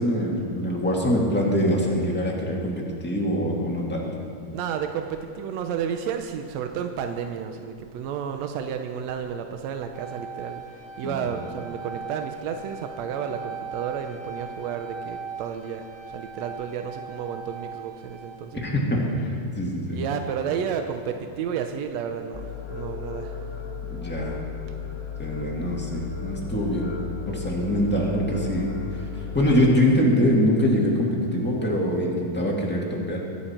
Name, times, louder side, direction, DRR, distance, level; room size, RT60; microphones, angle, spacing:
voice 1, 0.0-4.1 11.0-11.3 18.5-20.0 23.8-24.4 25.2-27.0 27.3-33.2, equal, 5° left, -4 dB, 0.9 m, -24 dB
voice 2, 4.5-15.8 16.1-18.6 19.9-23.4, right 7 dB, 80° right, 6 dB, 1.5 m, -31 dB
sound 1, 9.9-18.4, right 5 dB, 45° right, 1.9 m, -39 dB
sound 2, 22.3-29.7, left 6 dB, 90° left, 0.6 m, -35 dB
23.0 x 9.8 x 4.3 m, 2.3 s
omnidirectional pair, 3.9 m